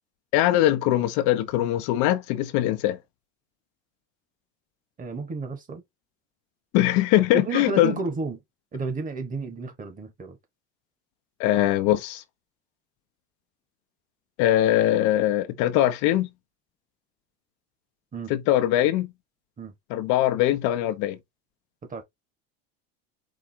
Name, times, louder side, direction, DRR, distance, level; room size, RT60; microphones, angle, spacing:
voice 1, 0.3-3.0 6.7-7.9 11.4-12.2 14.4-16.3 18.3-19.1 19.9-21.2, left 13 dB, 65° left, 0.8 m, -22 dB
voice 2, 5.0-5.8 7.3-8.4 8.7-10.4 18.1-18.3 19.6-19.7 21.9-22.0, right 4 dB, 25° right, 1.5 m, -32 dB
4.9 x 2.3 x 4.3 m
supercardioid pair, 125°, 32 cm